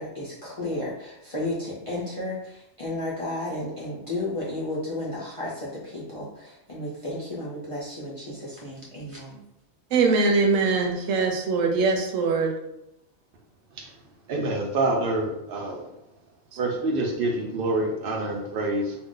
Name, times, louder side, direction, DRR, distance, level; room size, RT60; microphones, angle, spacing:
voice 1, 0.0-9.4, left 1 dB, 50° left, -8 dB, 0.4 m, -33 dB
voice 2, 9.9-12.5, right 4 dB, 85° right, 2 dB, 1.0 m, -22 dB
voice 3, 14.3-15.8 16.6-19.0, right 2 dB, 60° right, 0 dB, 0.6 m, -26 dB
2.5 x 2.2 x 3.6 m, 0.85 s
omnidirectional pair, 1.3 m